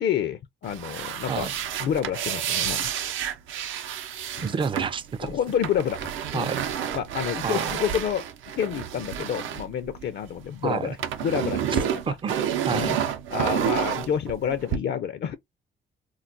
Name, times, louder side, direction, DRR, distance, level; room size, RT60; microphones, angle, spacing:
voice 1, 0.0-2.9 4.4-4.5 5.2-6.5 6.9-8.3 8.6-11.0 11.2-12.2 12.7-13.0 13.3-15.4, left 9 dB, 60° left, 0.4 m, -29 dB
sound 1, 0.6-10.4 10.7-14.8, right 9 dB, 80° right, 0.6 m, -30 dB
voice 2, 4.4-5.3 6.3-6.6 7.4-7.8 10.6-11.0 12.1-12.9, right 6 dB, 25° right, 0.4 m, -29 dB
2.3 x 2.1 x 3.8 m
cardioid pair, 90°, 20 cm